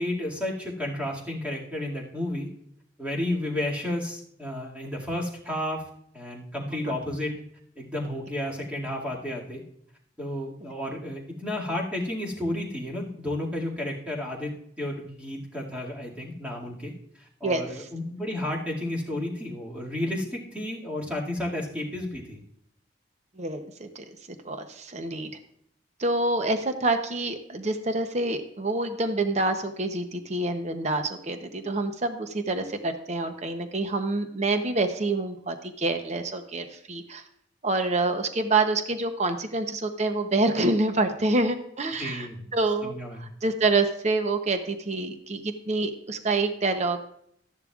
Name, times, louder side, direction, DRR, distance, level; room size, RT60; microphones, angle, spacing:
voice 1, 0.0-2.5 3.0-5.8 6.1-7.3 7.8-9.6 10.2-14.5 14.8-16.9 17.4-22.4 42.0-42.4 42.8-43.2, left 1 dB, 5° right, -4 dB, 2.2 m, -32 dB
voice 2, 23.4-24.0 24.4-25.3 26.0-37.2 37.6-42.3 42.5-42.9 43.2-47.1, right 2 dB, 40° right, 7 dB, 0.8 m, -27 dB
13.5 x 10.5 x 2.4 m, 0.68 s
head